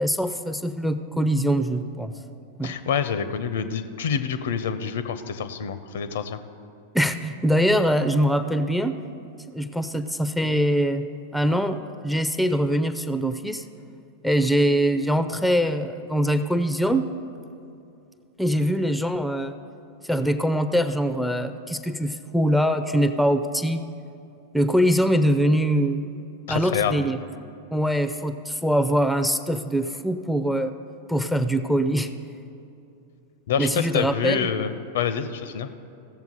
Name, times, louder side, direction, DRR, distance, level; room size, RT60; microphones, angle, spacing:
voice 1, 0.0-2.1 2.6-2.7 6.9-9.0 9.5-11.1 11.3-13.6 14.2-17.1 18.4-19.6 20.1-23.8 24.5-26.0 26.5-27.2 27.7-30.8 31.1-32.1 33.6-34.5, equal, ahead, 10 dB, 0.4 m, -23 dB
voice 2, 2.6-6.4 26.5-27.0 33.5-35.7, left 7 dB, 60° left, 12 dB, 0.5 m, -27 dB
16.0 x 7.1 x 3.9 m, 2.7 s
figure-of-eight pair, 90°, 0 cm